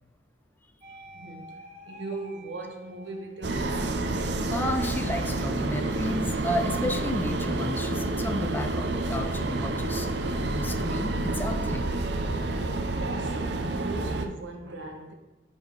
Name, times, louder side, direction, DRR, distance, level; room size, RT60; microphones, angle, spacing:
sound 1, 0.8-3.7 4.2-6.5, equal, 40° right, 1.1 m, -50 dB
voice 1, 1.1-4.3 12.8-15.1, right 2 dB, 85° right, 1.1 m, -39 dB
sound 2, 3.4-14.3, right 2 dB, 65° right, 0.6 m, -29 dB
voice 2, 4.5-10.1 10.5-11.9, left 1 dB, 10° left, 0.4 m, -32 dB
6.7 x 5.3 x 4.0 m
head